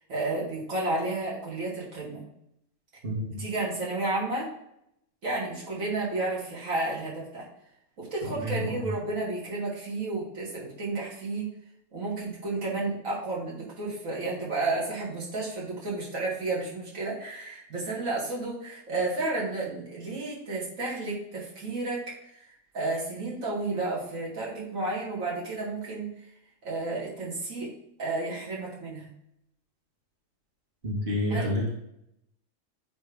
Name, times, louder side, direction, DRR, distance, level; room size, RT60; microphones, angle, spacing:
voice 1, 0.1-2.2 3.4-4.5 5.2-7.5 8.0-11.5 11.9-22.0 22.3-22.4 22.7-26.1 26.6-27.7 28.0-29.1 31.3-31.5, right 2 dB, 80° right, -5 dB, 2.3 m, -32 dB
voice 2, 3.0-3.4 8.2-8.9 30.8-31.7, left 1 dB, 45° right, -4 dB, 1.9 m, -29 dB
9.4 x 3.4 x 3.5 m, 0.78 s
omnidirectional pair, 1.4 m